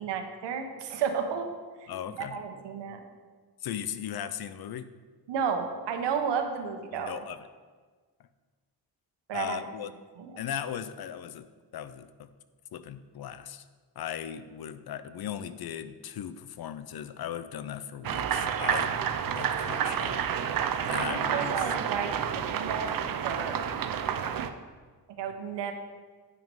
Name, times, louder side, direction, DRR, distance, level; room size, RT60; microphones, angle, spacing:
voice 1, 0.0-1.5 2.2-3.0 5.3-7.2 9.3-9.6 10.2-10.3 20.9-23.6 25.2-25.7, right 6 dB, 85° right, 5 dB, 1.1 m, -32 dB
voice 2, 1.9-2.4 3.6-4.9 6.9-7.4 9.3-9.9 10.4-11.5 11.7-12.3 12.7-13.6 14.0-18.9 19.3-20.2 20.8-21.7, left 9 dB, 60° left, 14 dB, 0.6 m, -37 dB
sound 1, 18.0-24.5, right 8 dB, 55° right, 0.7 m, -29 dB
9.5 x 6.0 x 5.3 m, 1.5 s
cardioid pair, 80°, 41 cm